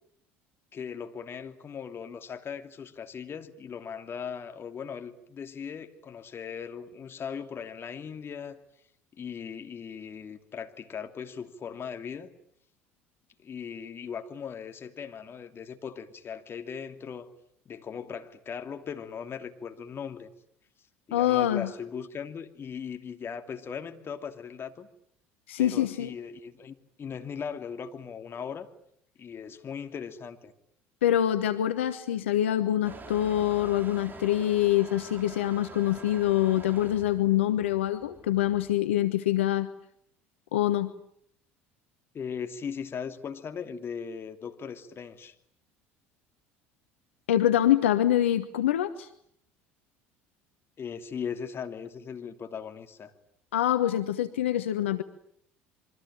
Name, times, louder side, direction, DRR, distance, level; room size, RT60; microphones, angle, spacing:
voice 1, 0.7-8.6 9.1-12.3 13.4-17.3 17.6-20.3 21.1-24.9 25.6-28.7 29.2-30.5 42.1-45.3 50.8-53.1, left 7 dB, 35° left, 7 dB, 2.8 m, -38 dB
voice 2, 21.1-21.7 25.5-26.1 31.0-39.7 40.5-40.9 47.3-49.1 53.5-55.0, left 12 dB, 80° left, 11 dB, 1.2 m, -25 dB
Motor vehicle (road) / Engine starting / Accelerating revving vroom, 32.8-38.7, right 4 dB, 30° right, 3.3 m, -46 dB
27.5 x 24.0 x 9.0 m, 0.69 s
hypercardioid pair, 65°, 7 cm